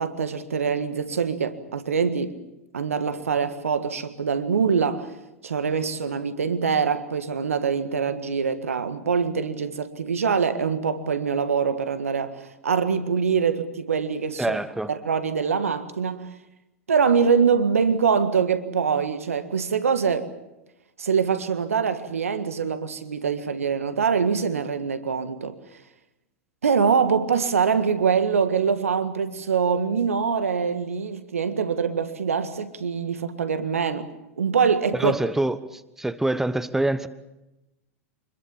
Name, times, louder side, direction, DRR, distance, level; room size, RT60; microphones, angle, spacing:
voice 1, 0.0-2.4 2.7-5.1 5.4-14.6 14.9-16.3 16.9-20.3 21.0-25.6 26.6-34.1 34.4-35.1, right 6 dB, 80° right, 1.7 m, -24 dB
voice 2, 14.4-14.9 35.0-37.1, right 1 dB, 5° right, 1.1 m, -25 dB
26.0 x 21.0 x 7.3 m
figure-of-eight pair, 95°, 7 cm